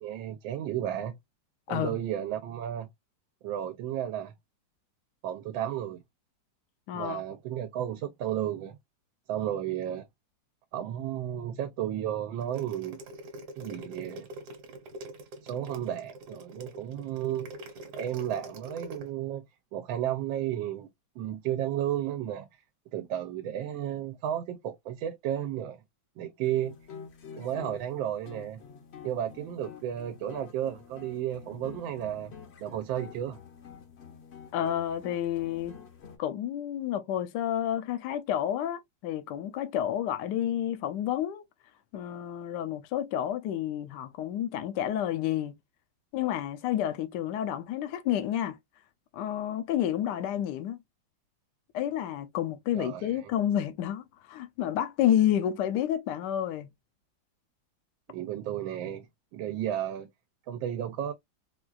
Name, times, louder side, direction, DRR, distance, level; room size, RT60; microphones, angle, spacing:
voice 1, 0.0-1.2 1.7-2.9 3.4-4.3 5.2-6.0 6.9-8.8 9.3-10.1 10.7-13.0 13.6-14.3 15.4-17.5 17.9-19.4 19.7-20.9 21.2-22.6 22.9-25.8 26.2-26.7 27.3-28.6 29.0-32.3 32.6-33.4 52.7-53.3 58.1-59.1 59.3-60.1 60.5-61.1, right 11 dB, 85° right, 1.3 m, -33 dB
voice 2, 1.7-2.0 6.9-7.2 34.5-35.7 36.2-41.4 41.9-45.6 46.1-48.6 49.1-50.8 51.7-56.7, left 11 dB, 75° left, 1.1 m, -30 dB
sound 1, 12.4-19.0, right 1 dB, 65° right, 1.4 m, -43 dB
sound 2, 26.4-36.2, left 6 dB, 55° left, 0.8 m, -48 dB
4.4 x 2.3 x 2.3 m
omnidirectional pair, 2.1 m